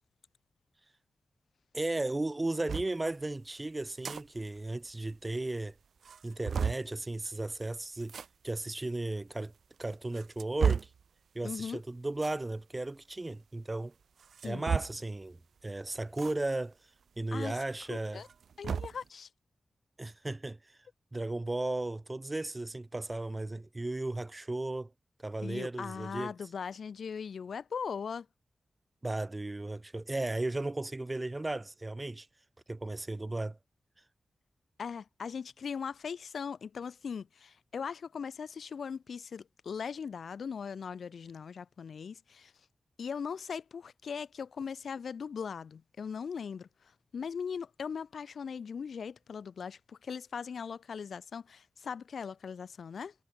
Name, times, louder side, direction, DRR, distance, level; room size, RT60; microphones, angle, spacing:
voice 1, 1.7-5.7 6.2-8.2 8.4-9.5 9.8-10.9 11.4-13.9 14.4-15.4 15.6-16.7 17.2-18.2 20.0-20.6 21.1-24.9 25.2-26.3 29.0-32.3 32.7-33.6, right 2 dB, 20° right, 1.8 m, -35 dB
sound 1, 2.7-2.9 3.8-4.2 4.6-4.7 4.9-5.0 5.6-5.7 6.0-6.9 8.0-8.3 9.1-9.2 9.9-11.0 12.1-12.4 14.2-15.1 16.2-16.3 16.7-16.8 18.1-19.0, right 6 dB, 85° right, 1.2 m, -33 dB
voice 2, 11.4-11.8 14.4-14.6 17.3-17.6 17.9-18.3 18.6-19.3 25.4-28.3 34.8-42.5 43.0-46.7 47.1-53.1, left 6 dB, 70° left, 1.7 m, -39 dB
wide cardioid pair, 170°, 0 cm